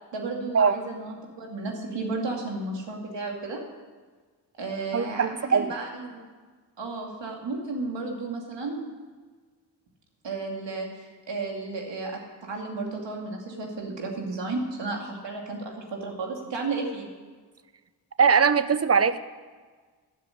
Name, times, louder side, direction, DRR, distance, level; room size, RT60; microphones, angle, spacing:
voice 1, 0.1-3.6 4.6-6.2 6.8-8.8 10.2-10.9 11.3-17.1, right 3 dB, 75° right, 1 dB, 2.6 m, -33 dB
voice 2, 4.9-5.7 18.2-19.2, right 6 dB, 35° right, 14 dB, 0.8 m, -21 dB
12.5 x 6.9 x 9.8 m, 1.5 s
cardioid pair, 40°, 44 cm